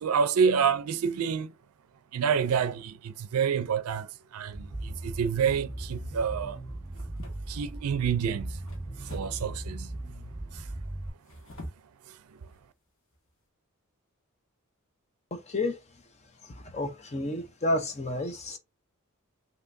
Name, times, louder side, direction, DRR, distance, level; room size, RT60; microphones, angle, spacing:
voice 1, 0.0-1.5 2.1-4.1 4.3-6.6 7.5-8.5 9.1-9.9, right 6 dB, 90° right, 0.4 m, -27 dB
sound 1, 4.5-11.1, right 1 dB, 15° right, 1.0 m, -38 dB
sound 2, 5.5-5.8 6.9-7.8 8.7-9.5 11.1-11.9 12.5-12.6 13.1-13.3, equal, 65° left, 1.6 m, -44 dB
voice 2, 15.3-15.8 16.7-18.6, left 2 dB, 30° left, 0.7 m, -30 dB
5.6 x 3.1 x 2.6 m
head